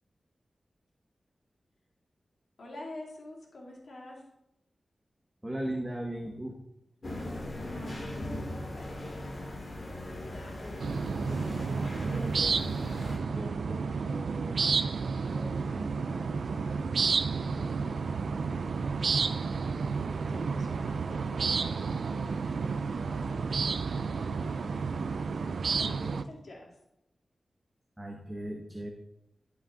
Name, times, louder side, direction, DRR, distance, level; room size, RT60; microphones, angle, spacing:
voice 1, 2.6-4.2 7.7-9.8 10.1-12.5 13.4-14.7 15.1-16.8 17.4-19.7 20.1-25.0 25.5-26.7, left 1 dB, 75° left, -2 dB, 2.5 m, -48 dB
voice 2, 5.4-6.6 28.0-28.9, right 1 dB, 10° right, 1 dB, 0.9 m, -36 dB
sound 1, 7.0-13.2, left 1 dB, 40° left, 2.1 m, -39 dB
sound 2, 10.8-26.2, right 5 dB, 80° right, 0.4 m, -31 dB
10.5 x 5.9 x 3.8 m, 0.86 s
wide cardioid pair, 105°, 0 cm